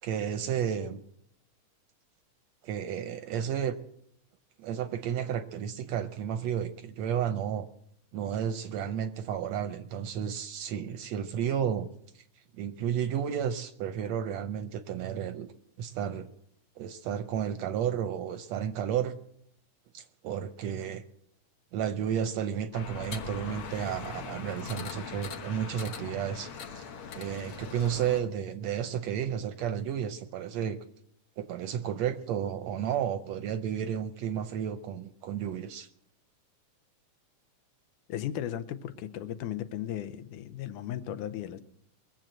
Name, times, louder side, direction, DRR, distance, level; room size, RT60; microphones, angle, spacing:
voice 1, 0.0-1.0 2.6-3.7 4.6-7.7 8.1-11.9 12.1-12.2 12.5-15.5 15.8-16.3 16.8-19.2 19.9-21.0 21.7-26.5 26.8-26.9 27.1-30.8 31.4-35.9, right 9 dB, 75° right, 10 dB, 1.7 m, -32 dB
sound 1, 22.7-28.2, left 5 dB, 55° left, 1.6 m, -41 dB
voice 2, 38.1-41.6, left 11 dB, 80° left, 12 dB, 2.3 m, -36 dB
22.0 x 7.5 x 7.7 m, 0.72 s
omnidirectional pair, 3.6 m